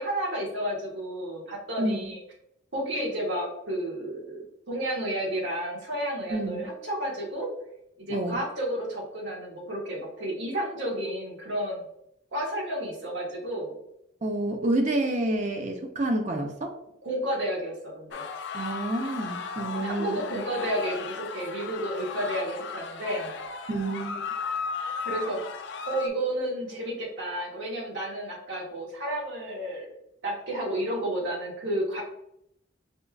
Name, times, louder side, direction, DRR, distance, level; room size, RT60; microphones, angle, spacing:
voice 1, 0.0-2.2 2.7-7.5 8.0-11.8 12.3-13.7 17.0-18.2 19.7-23.3 25.0-25.4 25.8-29.9 30.2-32.0, right 1 dB, 70° right, -3 dB, 1.1 m, -31 dB
voice 2, 1.8-2.1 6.3-6.7 8.1-8.4 14.2-16.8 18.5-20.2 23.7-24.2, right 1 dB, 35° right, 3 dB, 0.4 m, -28 dB
sound 1, 18.1-26.1, left 5 dB, 60° left, 0.3 m, -35 dB
5.0 x 2.3 x 2.2 m, 0.78 s
head